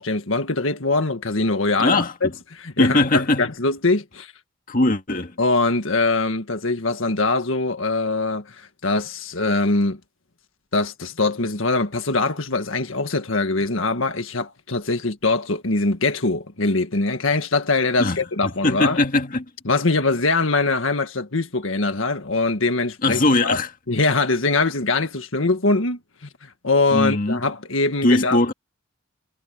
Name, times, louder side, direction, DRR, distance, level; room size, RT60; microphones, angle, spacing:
voice 1, 0.0-4.3 5.4-10.0 10.7-19.0 19.7-23.6 23.9-26.0 26.4-28.4, left 3 dB, 80° left, 1.8 m, -22 dB
voice 2, 1.8-2.1 2.8-3.5 4.7-5.4 18.0-18.2 18.6-19.5 23.0-23.7 26.9-27.4 28.0-28.5, left 2 dB, 45° left, 2.0 m, -20 dB
head